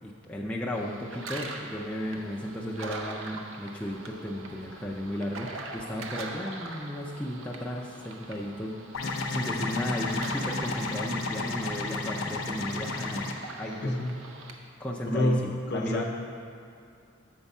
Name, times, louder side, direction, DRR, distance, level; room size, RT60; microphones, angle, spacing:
voice 1, 0.0-13.3 13.6-14.0 14.8-16.0, left 1 dB, 5° left, -4 dB, 0.4 m, -35 dB
sound 1, 0.7-14.5, right 3 dB, 70° right, 0.6 m, -43 dB
sound 2, 8.9-13.3, left 3 dB, 90° left, 0.6 m, -32 dB
voice 2, 15.1-15.4 15.7-16.0, left 1 dB, 55° left, 2 dB, 0.7 m, -26 dB
7.1 x 4.5 x 5.4 m, 2.3 s
head